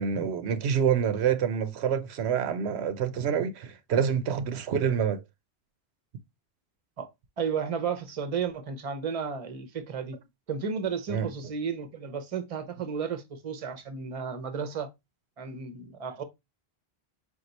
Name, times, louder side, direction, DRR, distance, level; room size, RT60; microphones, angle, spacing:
voice 1, 0.0-5.2 11.1-11.3, right 7 dB, 90° right, 0.9 m, -27 dB
voice 2, 7.4-10.2 10.5-14.9 15.4-16.2, right 6 dB, 40° right, 0.7 m, -33 dB
4.5 x 2.4 x 3.9 m
omnidirectional pair, 1.1 m